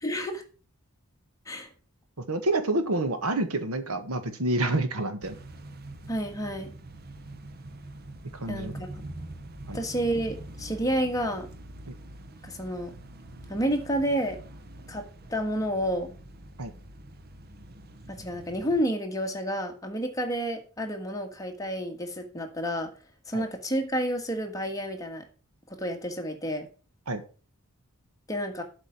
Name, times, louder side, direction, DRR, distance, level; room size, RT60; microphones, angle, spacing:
voice 1, 0.0-0.4 1.4-1.7 6.1-6.7 8.5-8.9 9.7-11.5 12.4-13.0 13.5-14.4 14.9-16.1 18.1-22.9 23.3-25.3 25.7-26.7 28.3-28.6, equal, 15° left, 4 dB, 1.6 m, -30 dB
voice 2, 2.2-5.4 8.3-8.7 9.7-9.8 16.6-16.7 23.3-23.4 27.1-27.2, right 2 dB, 85° right, 9 dB, 1.5 m, -28 dB
sound 1, 5.2-18.8, right 1 dB, 45° right, 0.8 m, -44 dB
8.0 x 5.1 x 7.5 m, 0.37 s
head